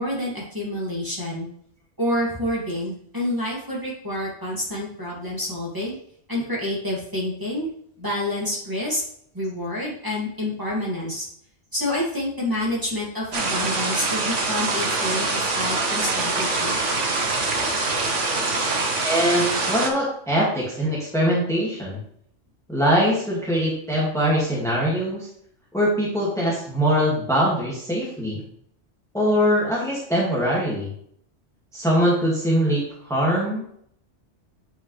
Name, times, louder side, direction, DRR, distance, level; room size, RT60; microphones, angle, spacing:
voice 1, 0.0-1.5 2.0-6.0 6.3-7.7 8.0-9.0 9.3-11.2 11.7-16.8, left 1 dB, 15° right, -6 dB, 2.4 m, -28 dB
sound 1, 13.3-19.9, right 3 dB, 80° right, 1.5 m, -24 dB
voice 2, 19.0-22.0 22.7-25.3 25.7-28.4 29.1-30.9 31.7-33.6, equal, ahead, -6 dB, 2.1 m, -22 dB
9.1 x 5.5 x 3.3 m, 0.66 s
omnidirectional pair, 1.2 m